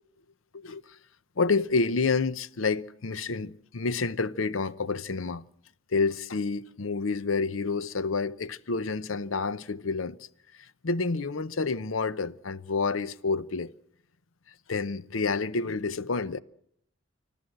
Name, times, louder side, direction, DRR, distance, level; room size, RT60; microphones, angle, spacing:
voice 1, 1.4-5.5 5.9-10.2 10.6-13.7 14.7-16.4, left 4 dB, 75° left, 0.8 m, -29 dB
25.5 x 14.0 x 7.9 m
head